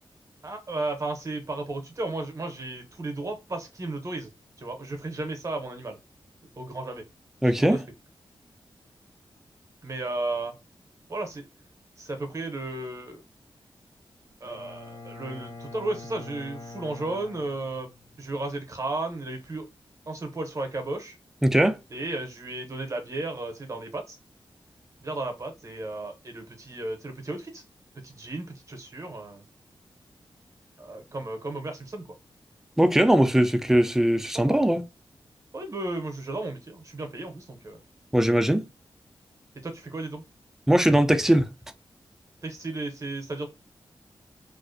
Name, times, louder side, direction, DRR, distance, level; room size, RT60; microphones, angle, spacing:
voice 1, 0.4-4.3 4.6-6.0 6.6-7.0 7.4-7.8 9.8-10.5 11.1-11.4 12.0-13.2 14.4-17.9 18.2-19.7 20.1-21.2 21.9-24.2 25.0-27.6 28.0-29.4 30.8-32.0 34.3-34.6 35.5-37.8 39.6-40.2 42.4-43.5, right 2 dB, 35° right, 0.6 m, -34 dB
voice 2, 7.4-7.8 21.4-21.8 32.8-34.8 38.1-38.6 40.7-41.5, right 1 dB, 5° right, 0.3 m, -20 dB
Bowed string instrument, 14.4-18.3, left 3 dB, 40° left, 0.7 m, -44 dB
2.4 x 2.1 x 2.5 m
wide cardioid pair, 85°, 9 cm